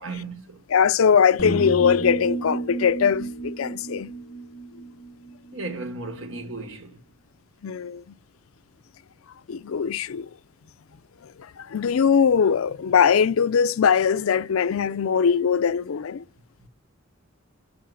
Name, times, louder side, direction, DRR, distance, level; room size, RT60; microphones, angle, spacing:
voice 1, 0.0-0.6 5.5-7.0 16.6-16.7, right 3 dB, 70° right, 1.5 m, -35 dB
voice 2, 0.7-4.1 7.6-8.0 9.5-10.3 11.6-16.2, left 7 dB, 85° left, 0.5 m, -21 dB
sound 1, 1.4-5.5, right 2 dB, 50° left, 1.3 m, -31 dB
10.5 x 5.6 x 6.3 m
head